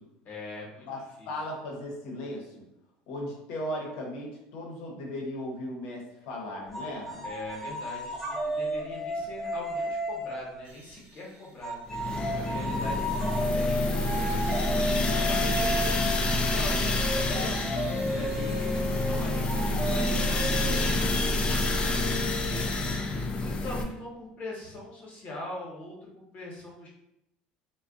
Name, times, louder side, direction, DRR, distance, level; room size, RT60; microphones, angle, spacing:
voice 1, 0.2-0.8 1.2-1.3 7.2-14.4 14.8-23.0 23.3-26.9, left 1 dB, 45° left, -3 dB, 1.0 m, -42 dB
voice 2, 1.2-2.6 3.1-7.3, left 1 dB, 75° left, -1 dB, 0.7 m, -37 dB
sound 1, 6.7-10.6 11.6-22.9, equal, ahead, 0.8 m, -33 dB
sound 2, 10.6-11.8 12.2-21.2, right 3 dB, 55° right, 0.5 m, -48 dB
sound 3, 11.9-23.8, left 2 dB, 30° left, 0.3 m, -28 dB
2.4 x 2.1 x 2.4 m, 0.85 s
supercardioid pair, 95°, 4 cm